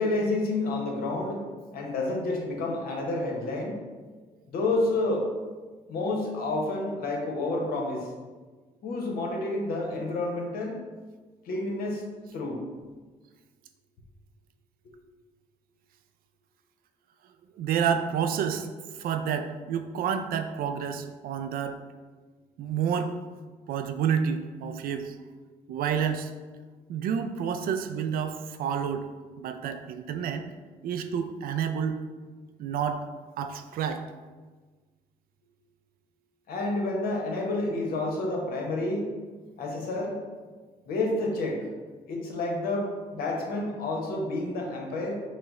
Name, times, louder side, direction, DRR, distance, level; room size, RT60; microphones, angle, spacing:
voice 1, 0.0-1.5 1.7-3.8 4.5-5.3 5.9-8.1 8.8-10.8 11.5-12.0 12.3-12.6 36.5-39.1 39.6-40.2 40.9-41.6 42.1-45.2, left 2 dB, 75° left, 0 dB, 0.9 m, -29 dB
voice 2, 17.6-18.7 19.0-21.8 22.6-23.1 23.7-25.2 25.7-26.3 26.9-29.1 29.4-30.5 30.8-32.0 32.6-33.1 33.4-34.1, right 7 dB, 70° right, 8 dB, 0.4 m, -29 dB
5.5 x 2.0 x 3.6 m, 1.4 s
supercardioid pair, 70°, 15 cm